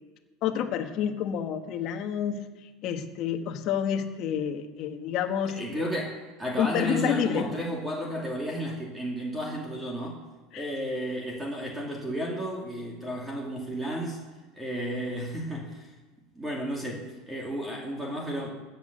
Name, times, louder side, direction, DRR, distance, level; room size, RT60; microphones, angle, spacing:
voice 1, 0.4-2.4 2.8-5.8 6.6-7.5 10.5-10.6, left 8 dB, 45° left, 5 dB, 1.6 m, -29 dB
voice 2, 5.5-10.2 10.5-14.2 14.5-15.9 16.4-18.5, equal, 5° right, -2 dB, 2.6 m, -33 dB
15.5 x 8.6 x 6.7 m, 1.3 s
supercardioid pair, 145°, 0 cm